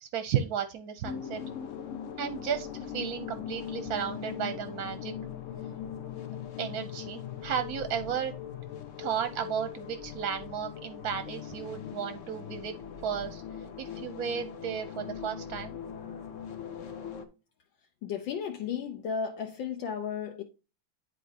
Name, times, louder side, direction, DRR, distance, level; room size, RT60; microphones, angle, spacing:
voice 1, 0.0-1.4 2.2-2.7 2.9-5.1 6.6-8.3 9.0-12.7 13.0-13.4 13.8-15.8, right 8 dB, 65° right, 1.0 m, -33 dB
sound 1, 1.0-17.3, left 8 dB, 55° left, 0.9 m, -40 dB
voice 2, 18.0-20.4, left 7 dB, 75° left, 1.5 m, -34 dB
10.5 x 4.2 x 2.8 m
omnidirectional pair, 2.2 m